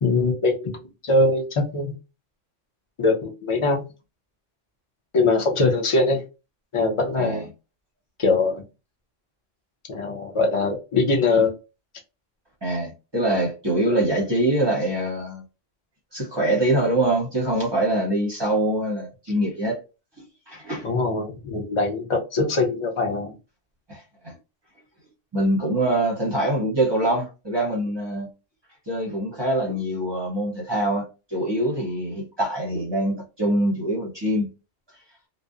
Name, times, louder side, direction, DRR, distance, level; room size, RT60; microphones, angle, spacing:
voice 1, 0.0-2.0 3.0-3.8 5.1-6.2 6.7-7.4 8.2-8.6 9.9-11.5 20.8-23.3, left 3 dB, 50° left, 0.3 m, -22 dB
voice 2, 12.6-15.4 16.1-19.8 20.5-20.9 23.9-24.3 25.3-28.3 28.9-34.5, right 1 dB, 25° right, 0.6 m, -24 dB
2.6 x 2.0 x 2.3 m
omnidirectional pair, 1.3 m